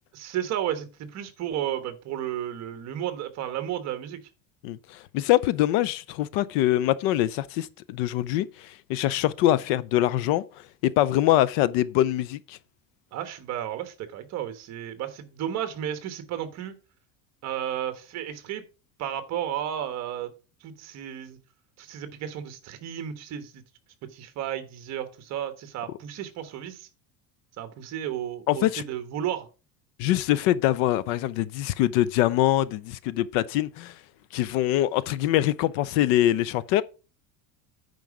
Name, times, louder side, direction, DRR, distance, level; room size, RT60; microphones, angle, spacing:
voice 1, 0.1-4.2 13.1-16.7 17.4-18.6 19.0-20.3 20.6-21.4 21.8-23.6 24.1-26.9 27.6-29.5, right 10 dB, 35° right, 1.3 m, -33 dB
voice 2, 4.6-10.4 10.8-12.6 28.5-28.8 30.0-33.9 34.3-36.8, left 14 dB, 55° left, 0.5 m, -24 dB
9.3 x 5.3 x 4.8 m
cardioid pair, 170°, 44 cm